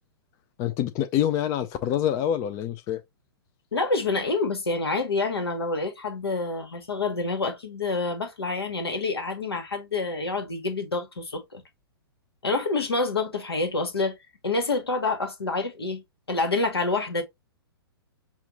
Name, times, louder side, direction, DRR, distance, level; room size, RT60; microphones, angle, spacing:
voice 1, 0.6-3.0, left 10 dB, 25° left, 0.4 m, -26 dB
voice 2, 3.7-11.6 12.4-14.2 14.4-16.0 16.3-17.2, left 3 dB, 75° left, 1.4 m, -27 dB
5.7 x 2.4 x 2.8 m
figure-of-eight pair, 115°, 13 cm